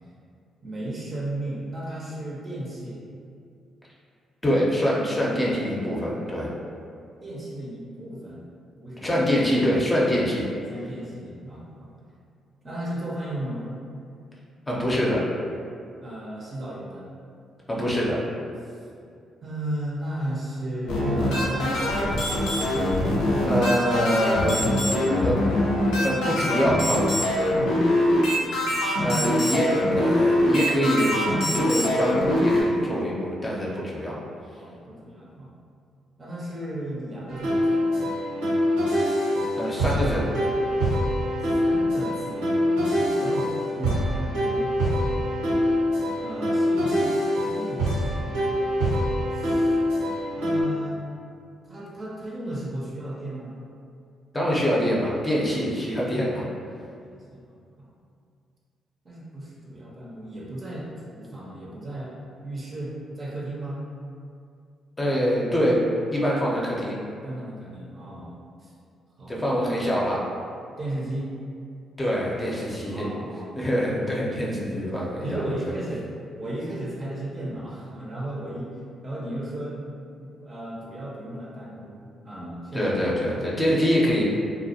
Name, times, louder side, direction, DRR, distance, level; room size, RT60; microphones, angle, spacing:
voice 1, 0.6-3.0 7.2-8.4 8.8-9.1 10.7-11.9 12.6-13.7 16.0-17.1 18.6-18.7 19.4-21.9 27.6-28.9 29.5-29.6 34.5-35.5 36.2-38.1 41.4-44.7 46.2-47.2 47.4-48.4 49.3-49.8 50.4-51.0 51.6-53.6 56.6-57.9 59.0-60.9 61.1-62.1 62.4-63.8 67.1-68.3 68.6-68.7 69.2-69.4 70.8-71.3 72.9-74.8 75.2-76.1 76.4-79.8 80.2-82.9 83.2-83.9, right 1 dB, 40° right, -5 dB, 0.6 m, -35 dB
voice 2, 4.4-6.5 9.0-10.5 14.7-15.3 17.7-18.2 23.3-24.7 25.2-25.4 26.0-27.2 29.0-31.1 31.5-34.2 39.5-40.2 54.3-56.5 65.0-65.8 66.1-67.0 69.3-70.2 72.0-73.1 73.5-75.4 82.7-84.2, equal, 25° left, -5 dB, 0.6 m, -24 dB
sound 1, 20.9-32.6, left 1 dB, 75° left, 0.5 m, -23 dB
sound 2, 37.3-50.6, equal, 90° right, 0.6 m, -24 dB
2.3 x 2.1 x 2.7 m, 2.4 s
hypercardioid pair, 45°, 0 cm